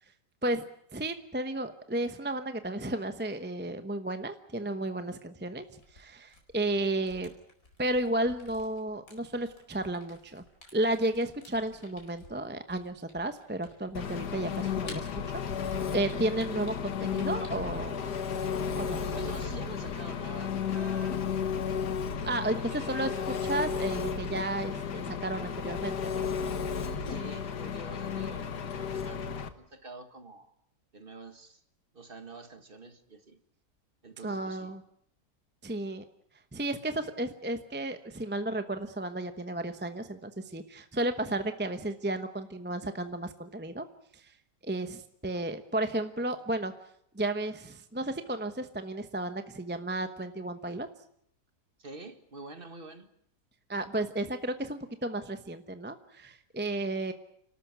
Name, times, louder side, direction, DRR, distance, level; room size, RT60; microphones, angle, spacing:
voice 1, 0.9-5.6 5.9-7.3 7.8-10.4 10.7-18.2 18.8-19.0 22.2-26.2 34.2-34.8 35.6-36.0 36.5-43.8 44.1-44.3 44.6-46.7 47.1-50.9 53.7-57.1, right 1 dB, 10° right, 8 dB, 0.7 m, -33 dB
Camera, 5.6-18.1, left 1 dB, 50° left, 5.0 m, -54 dB
Engine, 13.9-29.5, left 7 dB, 75° left, 1.9 m, -33 dB
voice 2, 19.1-21.2 22.5-23.3 27.1-30.5 30.9-31.6 31.9-33.4 34.0-34.7 51.8-53.1, right 3 dB, 35° right, 8 dB, 1.7 m, -47 dB
29.5 x 13.0 x 9.5 m, 0.72 s
omnidirectional pair, 1.8 m